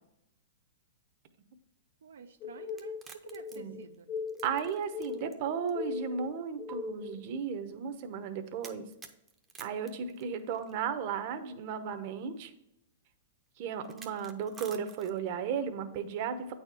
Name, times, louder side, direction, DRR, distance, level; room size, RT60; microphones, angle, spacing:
voice 1, 2.0-4.1, right 7 dB, 85° right, 6 dB, 0.5 m, -49 dB
sound 1, 2.4-7.2, left 6 dB, 30° left, 0.4 m, -40 dB
sound 2, 2.7-5.4 5.7-5.8 6.7-6.8 8.6-10.7 11.9-12.0 13.8-15.3, right 6 dB, 15° right, 0.7 m, -51 dB
voice 2, 4.4-8.8 9.6-12.5 13.6-16.5, right 7 dB, 45° right, 8 dB, 0.8 m, -35 dB
8.6 x 4.2 x 4.8 m, 0.84 s
hypercardioid pair, 145°, 0 cm